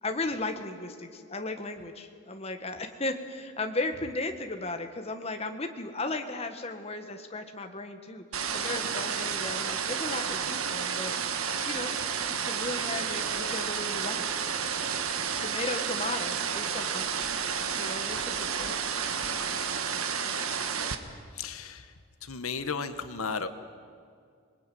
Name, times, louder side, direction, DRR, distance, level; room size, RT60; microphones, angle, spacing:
voice 1, 0.0-11.1 11.6-12.0 12.3-14.2 15.4-17.1 17.7-18.8, left 2 dB, 30° left, 6 dB, 1.5 m, -35 dB
sound 1, 8.3-21.0, right 6 dB, 80° right, 1.6 m, -31 dB
voice 2, 21.4-21.9 22.2-23.5, left 5 dB, 80° left, 10 dB, 1.4 m, -34 dB
26.5 x 20.0 x 9.4 m, 2.2 s
head